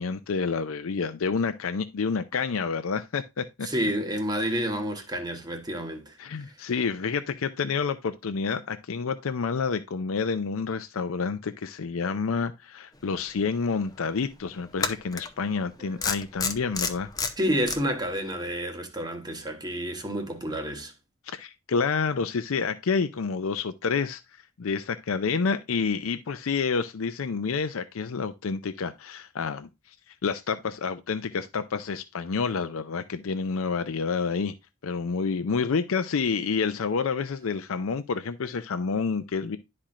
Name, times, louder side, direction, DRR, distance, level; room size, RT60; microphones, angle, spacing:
voice 1, 0.0-3.7 6.2-17.1 21.3-24.2 24.6-29.7 30.2-34.5 34.8-39.6, left 5 dB, 80° left, 0.5 m, -28 dB
voice 2, 3.6-6.1 15.8-15.9 17.4-20.9, equal, 20° right, 1.2 m, -29 dB
sound 1, 13.4-13.5 14.8-15.3 16.0-17.8, left 5 dB, 20° left, 0.7 m, -29 dB
11.5 x 4.3 x 2.5 m
head